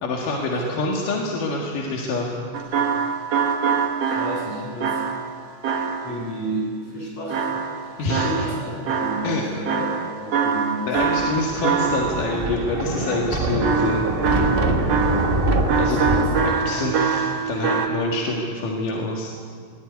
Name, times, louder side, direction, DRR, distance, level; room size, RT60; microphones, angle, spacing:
voice 1, 0.0-2.5 8.0-8.3 9.2-9.4 10.9-14.1 15.8-16.0 16.4-19.5, left 2 dB, 80° left, -1 dB, 3.5 m, -26 dB
sound 1, 2.5-6.3 7.3-9.4 9.7-12.4 13.6-17.9, right 5 dB, 55° right, 2.5 m, -24 dB
voice 2, 4.0-5.0 6.0-9.9 10.2-10.9 14.9-15.3 15.6-16.3 16.7-16.9, equal, 50° left, -3 dB, 8.5 m, -32 dB
Thunder, 10.9-16.5, right 2 dB, 75° right, 0.5 m, -24 dB
22.0 x 18.5 x 9.6 m, 2.1 s
omnidirectional pair, 3.7 m